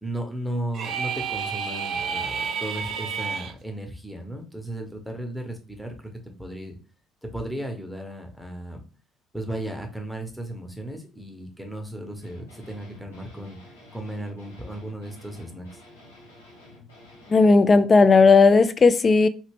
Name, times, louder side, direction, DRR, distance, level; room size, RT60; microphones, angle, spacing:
voice 1, 0.0-6.1 6.4-6.8 7.2-8.8 9.3-13.6 13.9-15.8, right 1 dB, ahead, 1.0 m, -35 dB
sound 1, 0.7-3.5, right 6 dB, 55° right, 0.4 m, -30 dB
sound 2, 12.2-17.5, left 1 dB, 80° left, 1.1 m, -50 dB
voice 2, 17.3-19.3, left 4 dB, 30° left, 0.3 m, -15 dB
3.2 x 2.8 x 3.3 m
figure-of-eight pair, 50°, 0 cm